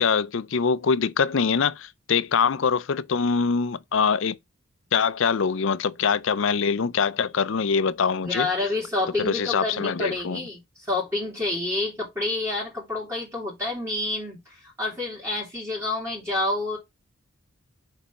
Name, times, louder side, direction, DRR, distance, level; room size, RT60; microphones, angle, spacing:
voice 1, 0.0-4.4 4.9-8.5 9.2-10.4, left 5 dB, 60° left, 0.5 m, -23 dB
voice 2, 8.2-16.8, left 2 dB, 10° right, 2.6 m, -28 dB
5.3 x 4.1 x 5.4 m
head